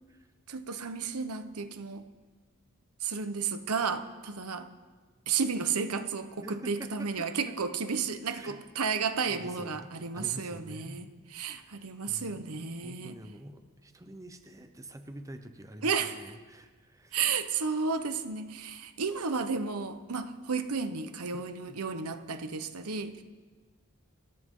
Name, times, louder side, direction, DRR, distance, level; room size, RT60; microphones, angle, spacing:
voice 1, 0.5-2.0 3.0-4.7 5.3-13.2 15.8-16.3 17.1-23.2, right 5 dB, 85° right, 9 dB, 1.1 m, -32 dB
voice 2, 6.4-7.6 8.2-8.6 9.3-9.9 10.1-11.0 11.5-11.8 12.1-17.2 21.7-21.8, right 1 dB, 15° right, 6 dB, 0.9 m, -47 dB
27.5 x 13.5 x 3.9 m, 1.4 s
head